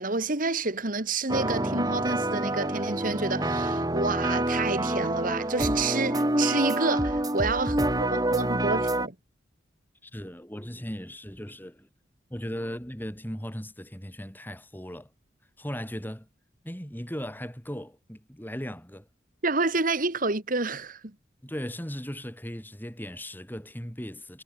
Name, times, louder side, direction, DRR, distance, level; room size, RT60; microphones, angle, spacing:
voice 1, 0.0-9.1 19.4-21.1, right 3 dB, 45° right, 2.2 m, -29 dB
sound 1, 1.3-9.1, right 1 dB, 20° right, 3.4 m, -27 dB
voice 2, 10.0-11.9 12.3-15.1 15.6-16.3 16.6-19.1 21.4-24.4, equal, 10° left, 6.5 m, -37 dB
head